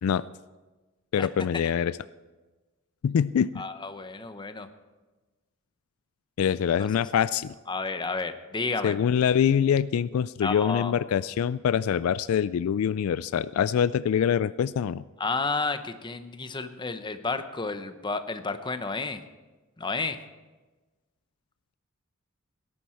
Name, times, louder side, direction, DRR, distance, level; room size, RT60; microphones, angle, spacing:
voice 1, 1.1-2.0 3.0-3.6 6.4-7.5 8.8-15.0, left 8 dB, 75° left, 17 dB, 0.3 m, -24 dB
voice 2, 3.6-4.7 6.8-6.9 7.7-9.0 10.4-10.9 15.2-19.2 19.8-20.2, left 3 dB, 20° left, 9 dB, 0.8 m, -31 dB
18.0 x 11.0 x 4.4 m, 1.2 s
head